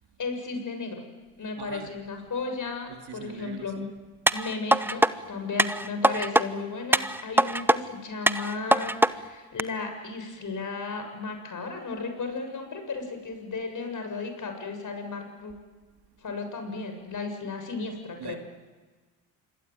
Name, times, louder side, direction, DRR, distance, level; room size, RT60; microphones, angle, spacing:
voice 1, 0.2-1.0 1.4-3.9 4.3-15.5 16.2-18.4, left 4 dB, 40° left, 5 dB, 7.1 m, -34 dB
voice 2, 1.6-1.9 2.9-3.9 18.2-18.4, right 9 dB, 50° right, 5 dB, 2.6 m, -42 dB
sound 1, 4.3-5.1 5.6-6.5 6.9-7.8 8.3-9.1 9.6-9.7, right 1 dB, 5° right, 0.9 m, -22 dB
27.0 x 22.0 x 9.3 m, 1.3 s
supercardioid pair, 70°, 49 cm